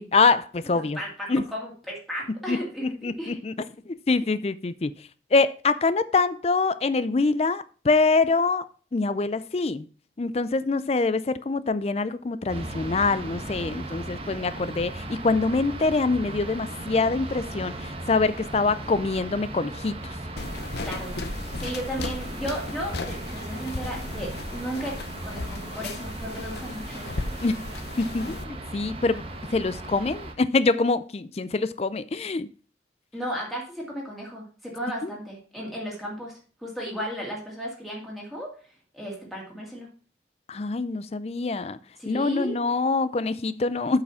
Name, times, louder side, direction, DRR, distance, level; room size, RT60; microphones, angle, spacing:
voice 1, 0.0-1.0 1.3-1.5 2.5-3.5 3.9-4.9 5.3-8.6 8.9-9.9 10.2-20.1 27.4-27.6 28.0-29.2 29.5-32.5 35.0-35.1 40.5-41.8 42.1-44.0, left 3 dB, 35° left, 0.4 m, -25 dB
voice 2, 0.7-3.4 20.8-21.2 21.6-24.9 25.2-27.1 33.1-38.5 38.9-39.9 42.0-42.6, equal, ahead, 2.3 m, -34 dB
sound 1, 12.5-30.3, right 2 dB, 35° right, 1.1 m, -37 dB
sound 2, 20.4-28.4, left 3 dB, 65° left, 0.8 m, -36 dB
8.2 x 4.9 x 5.7 m
head